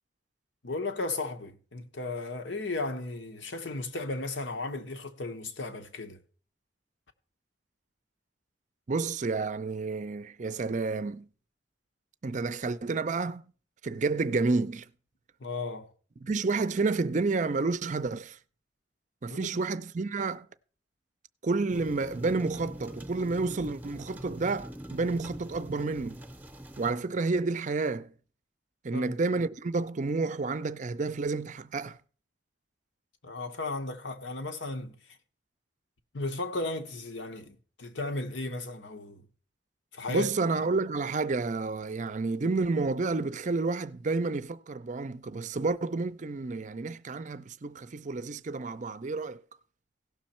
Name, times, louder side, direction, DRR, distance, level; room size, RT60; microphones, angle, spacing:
voice 1, 0.6-6.2 15.4-15.9 19.3-19.6 28.9-29.1 33.2-35.2 36.1-39.3 39.9-40.3, left 2 dB, 90° left, 1.2 m, -35 dB
voice 2, 8.9-11.3 12.2-13.5 13.8-14.9 16.2-18.4 19.2-20.5 21.4-26.2 26.8-28.1 28.8-32.0 40.1-49.4, right 3 dB, 40° right, 0.5 m, -30 dB
sound 1, 21.7-26.9, right 1 dB, 10° right, 0.7 m, -43 dB
16.5 x 6.3 x 4.3 m
head